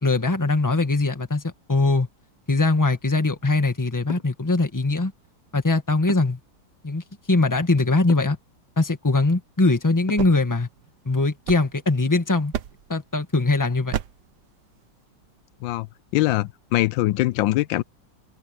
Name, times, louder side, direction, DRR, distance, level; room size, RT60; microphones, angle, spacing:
voice 1, 0.0-2.1 2.5-5.1 5.5-6.4 6.8-8.4 8.8-10.7 11.0-12.5 12.9-13.9, left 3 dB, 10° left, 1.4 m, -21 dB
sound 1, 4.1-4.4 6.1-6.5 8.1-8.4 10.1-10.5, left 5 dB, 30° left, 1.0 m, -35 dB
sound 2, 9.9-12.1 12.5-13.0 13.9-14.4, right 10 dB, 65° right, 1.4 m, -33 dB
voice 2, 16.1-17.8, left 17 dB, 85° left, 1.3 m, -22 dB
open air
omnidirectional pair, 2.0 m